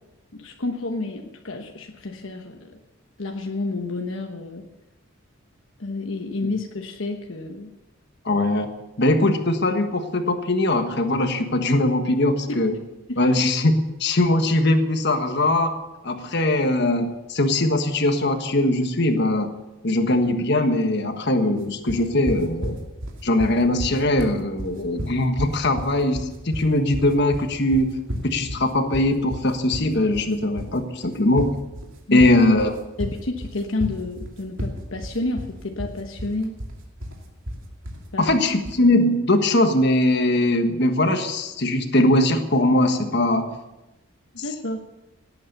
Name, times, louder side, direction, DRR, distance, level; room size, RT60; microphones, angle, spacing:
voice 1, 0.3-2.7 3.2-4.7 5.8-7.7 12.5-12.6 13.1-13.3 32.1-32.3 33.0-36.6 38.1-38.4 44.3-44.8, left 2 dB, 70° left, 3 dB, 1.2 m, -30 dB
voice 2, 8.2-8.7 9.0-12.7 13.2-15.7 16.0-19.5 19.8-22.8 23.2-28.0 28.2-31.5 32.1-32.8 38.2-43.5, left 1 dB, 55° left, 6 dB, 1.4 m, -21 dB
sound 1, 21.9-38.9, equal, 70° right, 2.6 m, -33 dB
18.0 x 8.8 x 6.7 m, 1.0 s
head